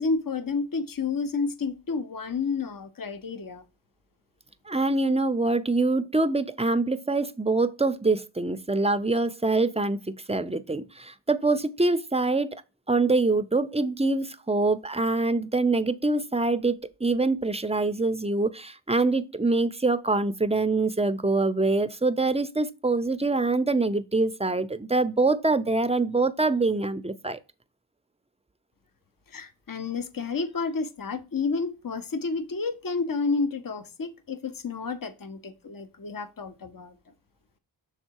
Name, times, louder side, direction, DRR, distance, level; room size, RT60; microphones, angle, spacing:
voice 1, 0.0-3.6 29.3-37.0, left 4 dB, 45° left, 0.8 m, -30 dB
voice 2, 4.7-12.6 12.9-27.4, right 3 dB, 15° right, 0.5 m, -25 dB
6.4 x 3.6 x 4.6 m
wide cardioid pair, 40°, 46 cm